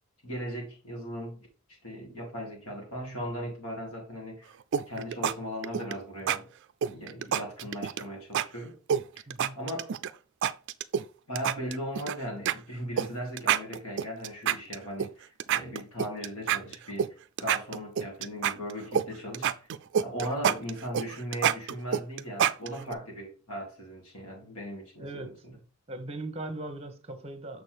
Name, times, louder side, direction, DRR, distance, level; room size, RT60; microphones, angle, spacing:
voice 1, 0.2-4.5 4.9-6.5 6.9-8.8 9.5-9.9 11.3-15.1 15.5-19.7 20.0-25.6, equal, 75° left, 2.9 m, -38 dB
sound 1, 4.7-5.3 5.6-5.9 6.3-6.4 6.8-8.0 8.3-8.5 8.9-10.1 10.4-11.0 11.4-12.1 12.5-12.6 13.0-13.1 13.4-15.1 15.4-17.1 17.4-19.1 19.3-22.9, right 8 dB, 55° right, 0.4 m, -27 dB
voice 2, 9.3-9.6 25.0-25.4 25.9-27.6, right 2 dB, 30° right, 1.1 m, -39 dB
6.5 x 6.2 x 3.4 m
head